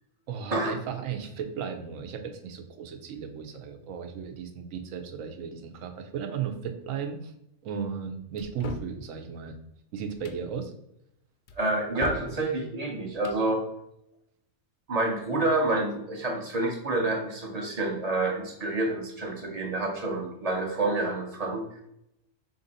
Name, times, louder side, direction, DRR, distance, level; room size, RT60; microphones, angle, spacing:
voice 1, 0.3-7.3 7.6-9.6 9.9-10.7, right 7 dB, 85° right, 5 dB, 1.0 m, -35 dB
sound 1, 8.4-9.0 10.1-10.4 11.5-12.3 13.1-13.4, left 2 dB, 70° left, 0.4 m, -38 dB
voice 2, 11.6-13.6 14.9-21.7, right 2 dB, 40° right, 1 dB, 0.7 m, -28 dB
4.2 x 2.6 x 3.9 m, 0.80 s
omnidirectional pair, 1.3 m